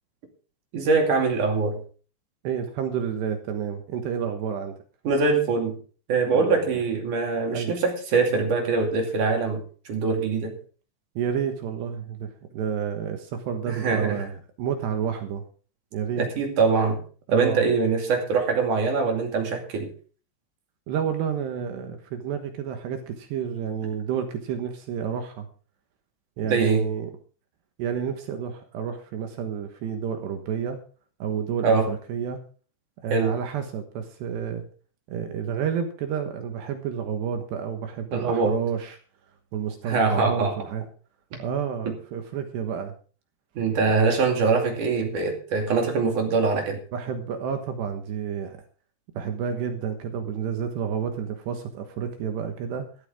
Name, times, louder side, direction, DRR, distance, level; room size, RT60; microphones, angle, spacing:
voice 1, 0.7-1.8 5.0-5.8 6.1-9.6 9.9-10.6 13.7-14.2 16.2-17.0 17.3-19.9 26.5-26.8 31.6-31.9 33.1-33.3 38.1-38.6 39.8-40.6 41.3-41.4 43.5-46.8, right 4 dB, 50° right, 2 dB, 3.4 m, -23 dB
voice 2, 2.4-4.8 6.3-6.8 7.5-7.7 11.2-15.4 15.9-16.3 17.3-17.6 20.9-25.5 26.4-27.1 27.8-30.8 31.2-32.4 33.0-34.6 35.1-39.0 39.5-40.8 41.4-42.9 43.9-44.1 46.9-48.6 49.1-52.9, right 8 dB, 70° right, 6 dB, 3.2 m, -30 dB
15.5 x 13.0 x 3.6 m, 0.39 s
omnidirectional pair, 5.6 m